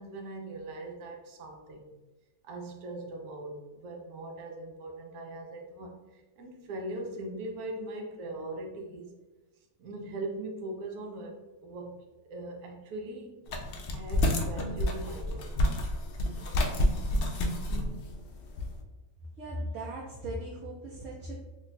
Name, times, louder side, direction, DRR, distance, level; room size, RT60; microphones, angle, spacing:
voice 1, 0.0-1.8 2.4-9.2 9.8-13.5 13.9-15.5, right 2 dB, 85° right, 2 dB, 1.2 m, -40 dB
sound 1, 13.5-18.8, left 1 dB, 80° left, 0.5 m, -29 dB
voice 2, 19.4-21.5, right 1 dB, 65° right, -4 dB, 0.9 m, -38 dB
2.9 x 2.2 x 3.9 m, 1.1 s
omnidirectional pair, 1.5 m